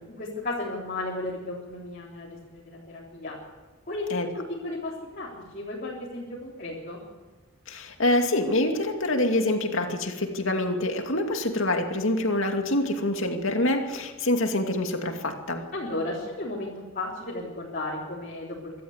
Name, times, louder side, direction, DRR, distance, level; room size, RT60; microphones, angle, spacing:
voice 1, 0.1-3.3 3.9-4.1 4.3-7.0 15.7-18.7, left 2 dB, 40° left, -5 dB, 3.9 m, -34 dB
voice 2, 7.7-15.6, left 1 dB, 65° left, 4 dB, 2.5 m, -26 dB
25.5 x 13.0 x 8.2 m, 1.3 s
head